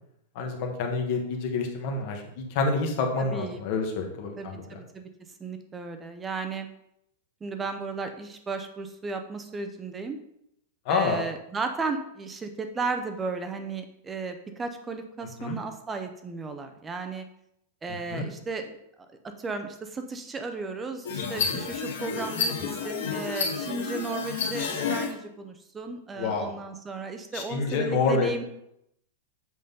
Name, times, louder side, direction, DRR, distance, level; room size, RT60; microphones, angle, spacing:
voice 1, 0.3-4.6 10.9-11.2 15.4-15.6 18.1-18.3 21.4-21.6 26.2-26.6 27.3-28.4, left 4 dB, 40° left, 3 dB, 1.1 m, -28 dB
voice 2, 3.2-3.6 4.4-5.1 5.4-6.7 7.4-10.2 10.9-17.2 17.8-18.8 19.4-28.4, right 4 dB, 10° right, 7 dB, 0.6 m, -34 dB
sound 1, 21.0-25.1, left 6 dB, 75° left, 2.0 m, -30 dB
7.7 x 3.9 x 5.3 m, 0.78 s
supercardioid pair, 175°, 0 cm